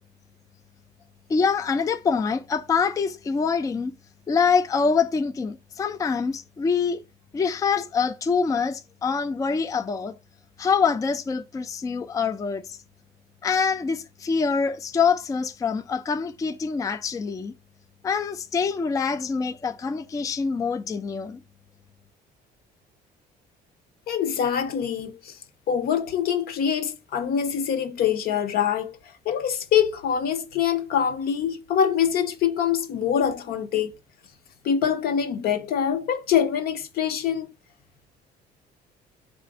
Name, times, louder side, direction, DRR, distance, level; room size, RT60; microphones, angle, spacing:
voice 1, 1.3-3.9 4.3-7.0 7.3-10.2 10.6-12.8 13.4-17.5 18.0-21.4, left 5 dB, 20° left, 0.4 m, -25 dB
voice 2, 24.1-25.4 25.7-29.0 29.2-33.9 34.6-37.5, left 8 dB, 65° left, 0.8 m, -24 dB
4.3 x 2.5 x 4.7 m
cardioid pair, 110°, 17 cm